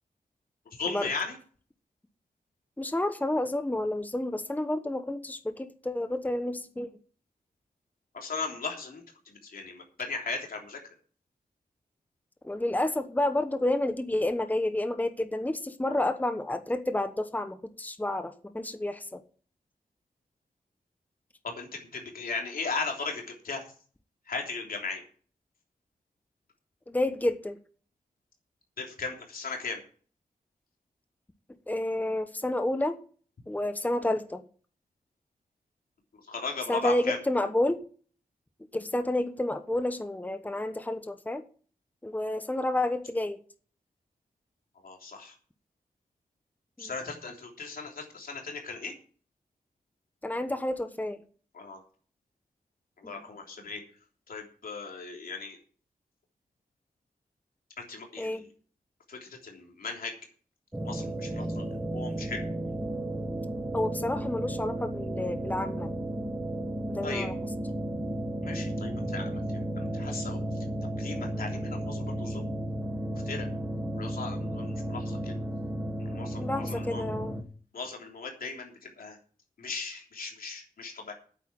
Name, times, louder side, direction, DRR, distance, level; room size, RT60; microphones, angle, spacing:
voice 1, 0.6-1.4 8.1-10.8 21.4-23.6 24.3-25.0 28.8-29.8 36.3-37.2 44.8-45.3 46.8-48.9 51.5-51.8 53.0-53.8 54.3-55.6 57.8-58.4 59.1-60.1 60.8-62.4 67.0-67.3 68.4-70.4 71.0-72.5 73.1-73.5 73.9-75.4 76.0-77.0 77.7-79.2 79.6-81.1, left 4 dB, 85° left, 3.3 m, -37 dB
voice 2, 2.8-6.9 12.4-19.2 26.9-27.6 31.7-33.0 33.5-34.4 36.7-37.8 38.7-41.4 42.0-43.4 46.8-46.9 50.2-51.2 53.0-53.1 58.2-58.4 63.7-65.9 66.9-67.3 76.4-77.4, left 1 dB, 10° left, 1.1 m, -30 dB
sound 1, 60.7-77.4, right 1 dB, 10° right, 1.7 m, -33 dB
9.2 x 8.0 x 8.8 m
wide cardioid pair, 80°, 15 cm